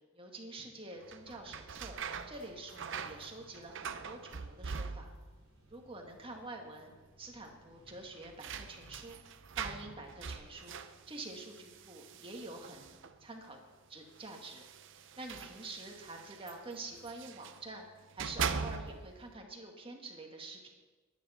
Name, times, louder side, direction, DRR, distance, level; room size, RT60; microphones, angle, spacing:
voice 1, 0.1-1.9 2.3-5.1 5.7-6.9 7.2-9.2 9.6-10.8 11.1-13.6 13.9-14.6 15.2-17.9 18.1-20.7, right 2 dB, 25° right, 2 dB, 1.8 m, -47 dB
sound 1, 1.0-5.4 5.7-6.4 6.7-6.8 7.8-13.3 14.1-17.6 18.0-19.2, right 6 dB, 60° right, 0.7 m, -42 dB
sound 2, 2.4-9.1, equal, 80° left, 4.3 m, -67 dB
23.0 x 9.5 x 4.3 m, 1.3 s
head